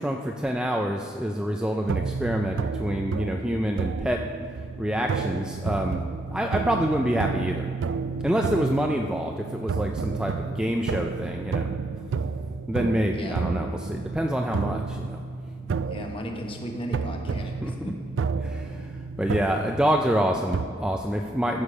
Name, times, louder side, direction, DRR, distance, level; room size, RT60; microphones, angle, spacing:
voice 1, 0.0-4.2 4.8-6.0 6.3-7.7 8.2-11.7 12.7-15.2 17.6-17.9 18.4-21.6, equal, 5° right, 2 dB, 0.3 m, -27 dB
sound 1, 1.8-20.7, right 5 dB, 85° right, 0.4 m, -31 dB
voice 2, 15.8-17.9, equal, 30° left, 2 dB, 1.1 m, -35 dB
15.0 x 6.5 x 5.0 m, 2.2 s
head